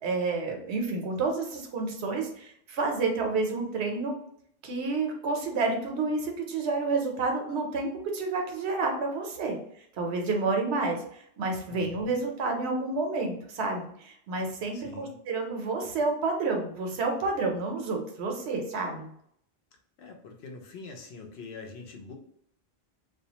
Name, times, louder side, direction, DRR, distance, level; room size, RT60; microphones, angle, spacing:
voice 1, 0.0-4.2 4.6-9.6 10.0-19.1, right 3 dB, 90° right, 2 dB, 0.9 m, -29 dB
voice 2, 11.7-12.2 14.7-15.2 20.0-22.1, left 4 dB, 80° left, 2 dB, 0.9 m, -44 dB
2.4 x 2.2 x 2.8 m, 0.69 s
omnidirectional pair, 1.1 m